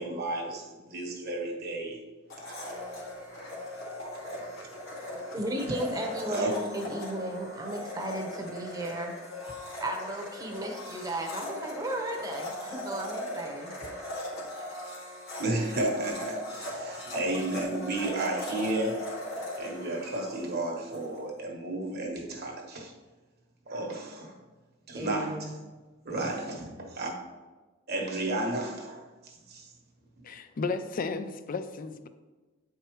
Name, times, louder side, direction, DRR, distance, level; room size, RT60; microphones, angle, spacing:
voice 1, 0.0-2.0 2.3-2.7 4.1-4.2 5.7-6.5 15.4-19.1 19.6-22.9 23.7-24.3 24.9-25.5 26.0-27.1 27.9-29.7, right 2 dB, 55° right, 1 dB, 1.3 m, -33 dB
Domestic sounds home sounds, 2.3-21.1, left 1 dB, 90° left, 2.0 m, -39 dB
voice 2, 5.3-9.1 9.8-13.7 14.5-14.6 25.0-25.5, right 1 dB, 20° right, 2 dB, 0.9 m, -35 dB
voice 3, 30.2-32.1, left 4 dB, 45° left, 11 dB, 0.4 m, -33 dB
8.8 x 4.8 x 3.1 m, 1.2 s
head